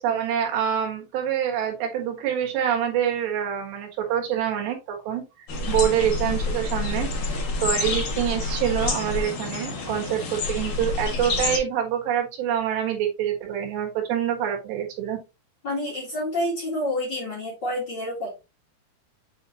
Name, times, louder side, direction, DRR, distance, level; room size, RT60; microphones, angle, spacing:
voice 1, 0.0-5.2 5.7-7.1 7.6-15.2, right 9 dB, 85° right, 2 dB, 3.7 m, -26 dB
sound 1, 5.5-11.6, left 3 dB, 70° left, 1.2 m, -28 dB
voice 2, 15.6-18.3, left 1 dB, 40° left, -2 dB, 1.6 m, -28 dB
8.0 x 4.1 x 2.9 m, 0.26 s
omnidirectional pair, 4.8 m